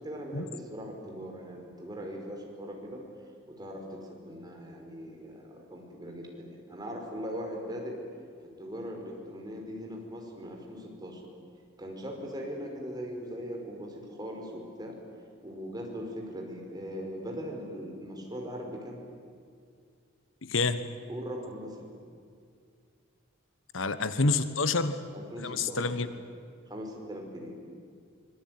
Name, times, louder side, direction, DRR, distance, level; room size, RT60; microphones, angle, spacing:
voice 1, 0.0-3.0 3.5-8.0 8.4-11.2 11.8-14.9 15.4-19.0 21.1-21.9 25.1-26.1 26.7-27.6, equal, 20° right, 1 dB, 5.0 m, -40 dB
voice 2, 20.4-20.8 23.7-25.0 25.4-26.1, left 3 dB, 80° left, 12 dB, 1.3 m, -28 dB
25.0 x 22.0 x 9.5 m, 2.2 s
head